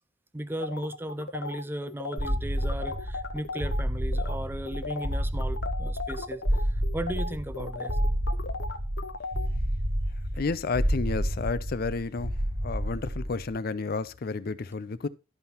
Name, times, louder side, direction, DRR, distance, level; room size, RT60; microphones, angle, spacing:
voice 1, 0.3-6.4 6.9-8.0, right 1 dB, 10° right, 0.5 m, -36 dB
sound 1, 0.6-3.8 4.1-4.4 4.7-9.5, left 3 dB, 85° left, 1.0 m, -37 dB
sound 2, 2.2-13.5, equal, 40° right, 1.4 m, -30 dB
voice 2, 10.4-12.3 12.6-15.1, left 4 dB, 55° left, 0.5 m, -31 dB
11.5 x 5.5 x 4.3 m
head